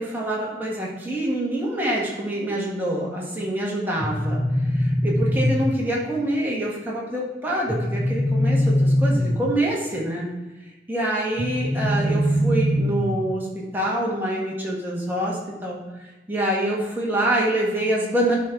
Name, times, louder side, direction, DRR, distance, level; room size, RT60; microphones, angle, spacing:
voice 1, 0.0-10.3 10.9-13.5 13.7-15.8 16.3-18.3, right 1 dB, 10° right, -5 dB, 1.7 m, -26 dB
sound 1, 4.0-6.0 7.7-9.7 11.4-13.4, equal, 5° left, 0.4 m, -22 dB
11.0 x 4.2 x 4.6 m, 1.1 s
head